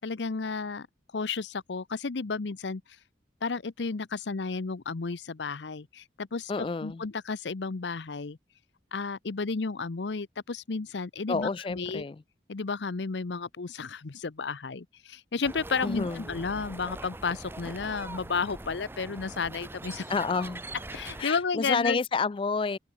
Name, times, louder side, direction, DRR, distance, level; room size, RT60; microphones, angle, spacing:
voice 1, 0.0-0.9 1.1-3.0 3.4-8.4 8.9-12.0 12.5-20.1 20.9-22.0, left 4 dB, 80° left, 0.7 m, -32 dB
voice 2, 6.5-7.0 11.3-12.2 15.8-16.2 20.1-20.6 21.2-22.8, left 4 dB, 30° left, 0.3 m, -29 dB
sound 1, 15.4-21.2, right 2 dB, 10° right, 0.6 m, -42 dB
head